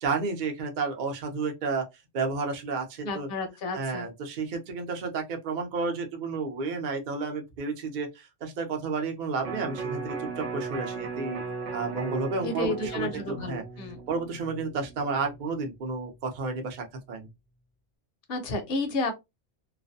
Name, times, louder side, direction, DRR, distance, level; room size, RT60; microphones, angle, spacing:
voice 1, 0.0-1.9 2.1-3.3 3.7-11.4 11.7-13.6 14.1-17.3, right 4 dB, 50° right, 0.6 m, -31 dB
voice 2, 3.0-4.1 12.4-14.0 18.3-19.2, left 2 dB, 60° left, 0.7 m, -31 dB
Electric guitar, 9.4-15.7 16.0-16.1, right 4 dB, 70° right, 1.0 m, -37 dB
2.4 x 2.1 x 2.5 m
omnidirectional pair, 1.3 m